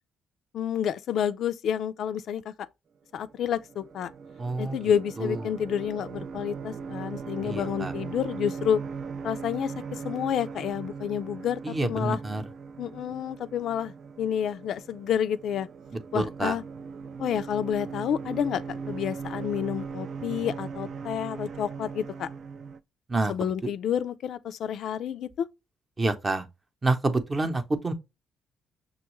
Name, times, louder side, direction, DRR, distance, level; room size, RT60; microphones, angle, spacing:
voice 1, 0.5-2.5 3.1-4.1 4.6-8.8 9.2-12.2 12.8-15.7 16.1-16.6 17.2-22.3 23.3-25.5, left 9 dB, 70° left, 0.3 m, -29 dB
sound 1, 3.3-22.8, right 5 dB, 55° right, 0.3 m, -39 dB
voice 2, 4.4-4.8 5.2-5.4 7.4-7.9 11.6-12.4 16.1-16.6 23.1-23.3 26.0-26.5 26.8-27.9, right 2 dB, 25° right, 0.7 m, -27 dB
6.1 x 2.3 x 3.0 m
cardioid pair, 90°, 0 cm